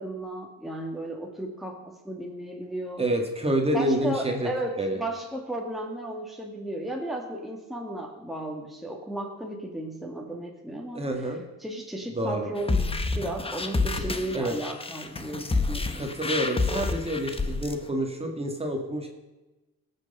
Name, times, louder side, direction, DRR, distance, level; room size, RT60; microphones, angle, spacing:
voice 1, 0.0-3.0 3.7-11.0 11.6-16.1, right 1 dB, ahead, 0 dB, 1.8 m, -34 dB
voice 2, 3.0-4.5 4.8-5.0 10.9-11.4 12.2-12.5 14.0-14.1 14.3-14.5 15.9-19.1, right 1 dB, 20° right, 3 dB, 1.9 m, -28 dB
sound 1, 12.6-17.8, left 3 dB, 20° left, 1.1 m, -28 dB
18.0 x 6.7 x 5.5 m, 1.1 s
cardioid pair, 90°, 30 cm